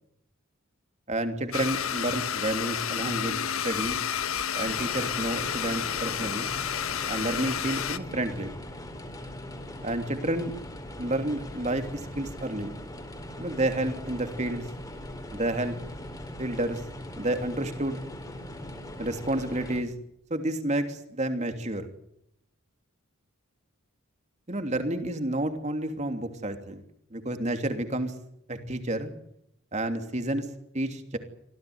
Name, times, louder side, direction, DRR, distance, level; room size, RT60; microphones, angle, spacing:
voice 1, 1.1-3.4 3.6-4.0 4.5-6.5 7.1-8.5 9.8-10.5 11.0-12.7 13.4-14.6 15.3-15.8 16.4-16.8 17.2-18.0 19.0-19.9 20.3-21.9 24.5-26.8 27.1-28.1 28.5-29.1 29.7-30.5 30.7-31.2, right 1 dB, 35° right, 7 dB, 3.0 m, -30 dB
Domestic sounds home sounds, 1.5-8.0, left 8 dB, 80° left, 1.3 m, -30 dB
sound 1, 4.6-19.8, left 1 dB, 15° left, 4.1 m, -40 dB
26.0 x 17.0 x 9.5 m, 0.76 s
head